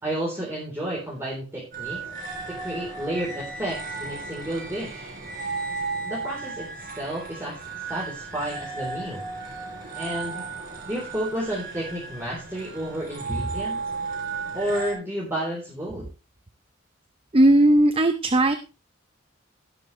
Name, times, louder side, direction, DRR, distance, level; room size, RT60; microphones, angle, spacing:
voice 1, 0.0-2.1 2.5-5.1 6.0-6.7 7.0-7.6 7.9-9.3 9.9-10.4 10.9-13.8 14.5-16.0, right 1 dB, 10° right, -6 dB, 3.7 m, -31 dB
sound 1, 1.7-14.9, right 4 dB, 45° right, 4.3 m, -35 dB
voice 2, 17.3-18.5, right 1 dB, 25° right, 8 dB, 0.7 m, -17 dB
18.0 x 7.0 x 3.2 m, 0.31 s
head